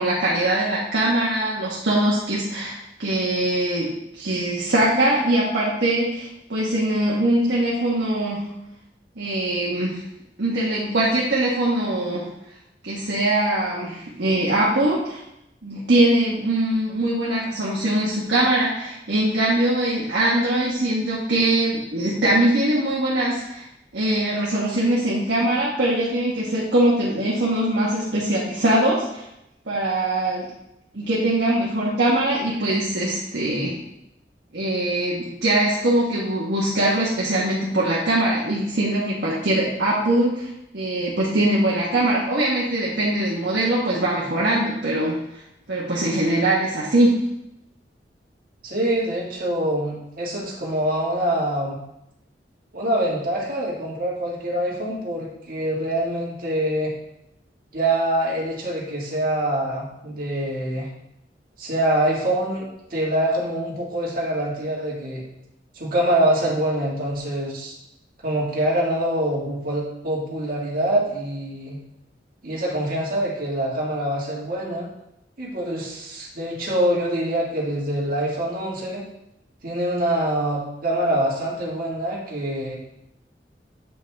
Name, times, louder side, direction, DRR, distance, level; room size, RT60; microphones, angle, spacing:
voice 1, 0.0-8.4 9.2-10.0 10.4-12.3 12.8-15.2 15.6-23.6 23.9-29.2 29.7-30.5 30.9-33.8 34.5-45.4 45.7-47.2, right 1 dB, 75° right, -6 dB, 1.4 m, -22 dB
voice 2, 48.6-51.8 52.7-56.9 57.7-60.9 61.6-65.2 65.8-67.8 68.2-71.8 72.4-74.9 75.4-79.0 79.6-82.8, right 1 dB, 55° right, -3 dB, 1.9 m, -25 dB
8.0 x 5.6 x 3.5 m, 0.84 s
head